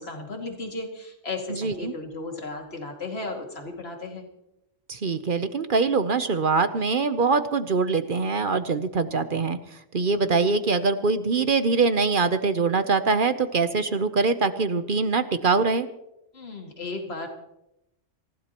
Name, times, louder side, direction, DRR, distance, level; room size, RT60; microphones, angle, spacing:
voice 1, 0.0-4.3 16.3-17.3, left 3 dB, 55° left, 2 dB, 2.6 m, -35 dB
voice 2, 1.5-1.9 4.9-9.6 9.9-15.9, right 4 dB, 50° right, 10 dB, 0.9 m, -23 dB
27.5 x 15.5 x 3.0 m, 0.86 s
omnidirectional pair, 1.3 m